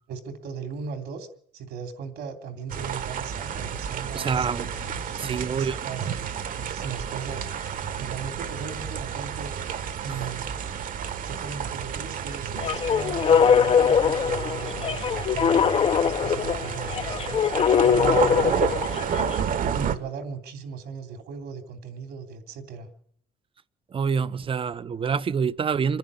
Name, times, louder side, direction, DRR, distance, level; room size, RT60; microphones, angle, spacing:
voice 1, 0.1-1.3 1.5-6.1 6.6-7.5 8.0-9.5 10.0-10.5 11.2-22.9, right 6 dB, 75° right, 3.1 m, -38 dB
sound 1, 2.7-20.0, right 8 dB, 55° right, 1.4 m, -31 dB
voice 2, 4.1-4.7 5.2-5.8 10.1-10.2 18.4-18.5 23.9-26.0, right 6 dB, 30° right, 0.7 m, -26 dB
sound 2, 12.6-19.4, left 7 dB, 35° left, 0.7 m, -22 dB
25.5 x 10.5 x 9.7 m
cardioid pair, 110°, 17 cm